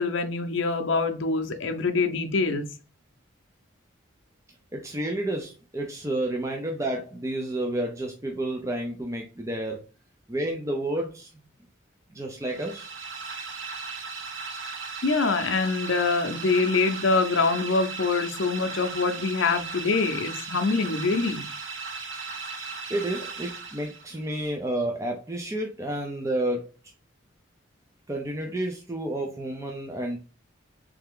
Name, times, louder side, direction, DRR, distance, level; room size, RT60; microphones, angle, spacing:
voice 1, 0.0-2.7 15.0-21.5, left 4 dB, 70° left, 0.6 m, -25 dB
voice 2, 4.7-9.8 10.3-11.3 12.1-12.9 22.9-26.6 28.1-30.2, right 1 dB, 15° right, 0.5 m, -30 dB
sound 1, 12.4-24.3, right 4 dB, 80° right, 0.7 m, -37 dB
3.4 x 3.3 x 3.6 m
head